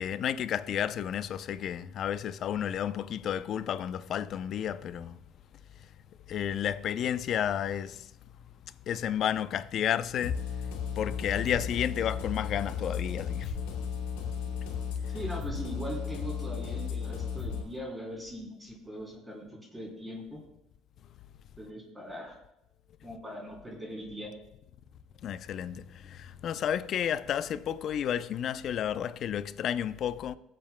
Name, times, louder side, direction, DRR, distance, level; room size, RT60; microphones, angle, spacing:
voice 1, 0.0-5.2 5.8-5.9 6.3-8.1 8.9-15.1 25.2-30.4, left 9 dB, 55° left, 0.5 m, -32 dB
sound 1, 10.2-17.6, left 6 dB, 85° left, 2.5 m, -35 dB
voice 2, 15.1-20.4 21.6-22.3 23.0-24.3, equal, 15° right, 3.3 m, -40 dB
20.0 x 7.6 x 2.2 m
supercardioid pair, 85°, 0 cm